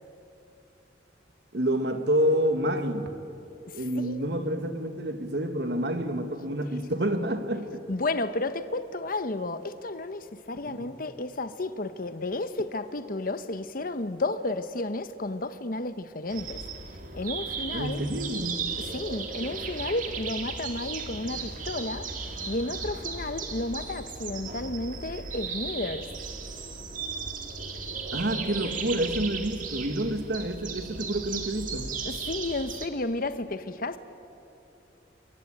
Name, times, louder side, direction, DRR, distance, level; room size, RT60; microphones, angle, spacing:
voice 1, 1.5-3.1 3.7-7.8 10.6-10.9 17.7-18.6 28.1-31.9, right 1 dB, 65° right, 8 dB, 1.7 m, -28 dB
voice 2, 3.7-4.3 7.9-16.6 17.1-18.0 18.9-22.1 22.5-26.1 32.0-34.0, left 2 dB, 50° left, 11 dB, 0.9 m, -32 dB
sound 1, 16.3-32.9, right 4 dB, 45° right, 2.4 m, -36 dB
28.5 x 23.0 x 8.9 m, 2.9 s
head